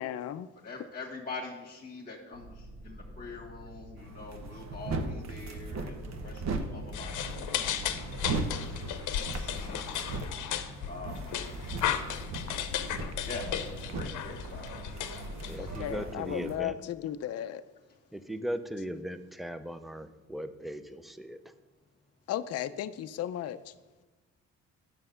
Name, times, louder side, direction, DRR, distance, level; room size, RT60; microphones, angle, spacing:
voice 1, 0.0-0.5 15.8-16.7 17.0-17.6 22.3-23.6, left 11 dB, 55° left, 11 dB, 0.5 m, -34 dB
voice 2, 0.5-10.1 10.9-11.3 12.7-12.9 13.2-14.7, left 3 dB, 30° left, -2 dB, 1.6 m, -45 dB
sound 1, 2.3-16.0, equal, 80° right, 2.3 m, -47 dB
sound 2, 4.0-16.6, right 3 dB, 60° right, 1.1 m, -38 dB
sound 3, 6.9-15.9, left 10 dB, 85° left, 0.7 m, -35 dB
voice 3, 15.4-16.8 18.1-21.5, equal, ahead, 11 dB, 0.5 m, -38 dB
7.7 x 6.0 x 5.6 m, 1.1 s
cardioid pair, 90°, 30 cm